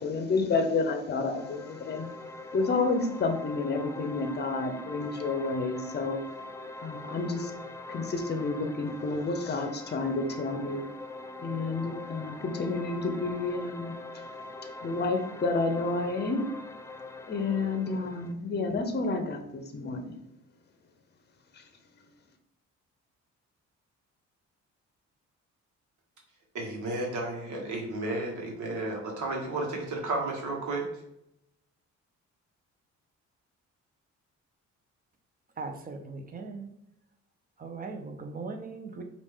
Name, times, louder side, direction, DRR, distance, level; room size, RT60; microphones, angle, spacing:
voice 1, 0.0-2.1 2.5-6.2 6.8-7.5 7.9-10.8 11.4-14.2 14.8-16.4 17.3-20.1, left 3 dB, 35° left, 6 dB, 0.7 m, -30 dB
sound 1, 1.3-18.3, left 2 dB, 10° left, 0.3 m, -43 dB
voice 2, 26.5-30.8, right 2 dB, 75° right, 0 dB, 1.2 m, -32 dB
voice 3, 35.6-36.7 37.6-39.0, right 4 dB, 30° right, 4 dB, 0.8 m, -39 dB
4.8 x 2.5 x 3.6 m, 0.78 s
cardioid pair, 90°, 30 cm